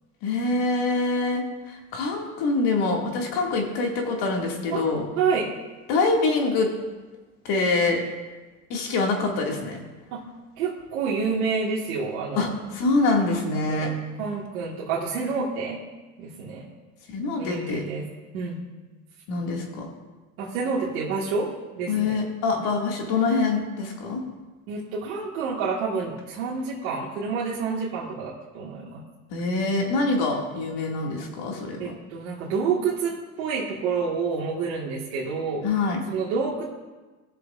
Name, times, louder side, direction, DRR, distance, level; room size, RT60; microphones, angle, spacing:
voice 1, 0.2-5.0 5.9-6.7 7.4-8.0 8.7-9.8 12.3-13.9 17.1-17.8 19.3-19.9 21.9-24.2 29.3-31.9 35.6-36.0, left 3 dB, 60° left, 1 dB, 2.2 m, -25 dB
voice 2, 5.2-5.5 10.1-10.2 10.6-12.5 13.7-13.9 14.2-15.8 16.2-16.7 17.4-18.0 18.3-18.6 20.4-22.2 24.7-29.0 31.8-35.7 36.1-36.7, right 5 dB, 85° right, -5 dB, 1.8 m, -28 dB
20.0 x 6.9 x 2.5 m, 1.2 s
supercardioid pair, 95°, 41 cm